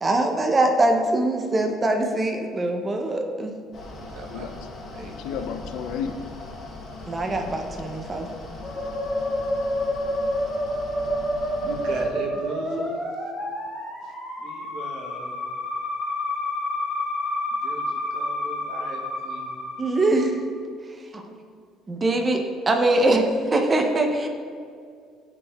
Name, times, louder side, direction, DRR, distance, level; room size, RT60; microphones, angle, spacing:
voice 1, 0.0-3.5 7.1-8.3 19.8-20.4 21.1-21.3 21.9-24.3, right 2 dB, 15° right, 4 dB, 0.5 m, -22 dB
Mechanical fan, 3.7-12.1, left 2 dB, 35° left, 0.8 m, -39 dB
voice 2, 4.0-4.5 4.9-5.1 8.6-8.8 11.2-13.0 14.0-14.1 14.4-15.4 17.6-19.6, right 2 dB, 55° right, 2 dB, 0.7 m, -37 dB
voice 3, 5.2-6.2, left 7 dB, 70° left, 9 dB, 0.3 m, -31 dB
Musical instrument, 8.6-20.4, left 1 dB, 15° left, 1.4 m, -29 dB
9.6 x 4.4 x 2.2 m, 2.2 s
cardioid pair, 175°, 0 cm